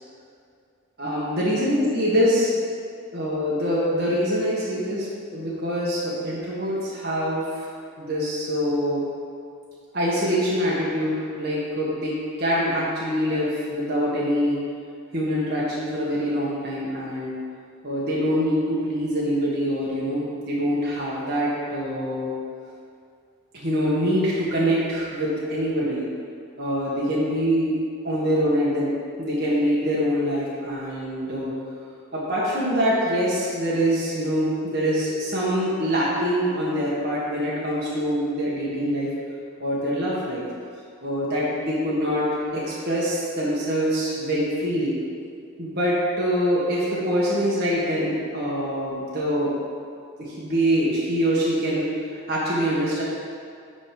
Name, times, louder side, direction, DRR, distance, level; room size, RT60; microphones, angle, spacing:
voice 1, 1.0-2.5 3.1-5.1 5.3-7.7 8.0-9.1 9.9-14.6 15.1-17.3 17.8-22.3 23.5-26.1 26.6-27.7 28.0-28.9 29.2-31.5 32.1-39.1 39.6-40.4 41.0-44.9 45.6-49.5 50.2-51.9 52.3-53.0, equal, 45° right, -7 dB, 1.5 m, -24 dB
10.5 x 4.0 x 5.3 m, 2.3 s
head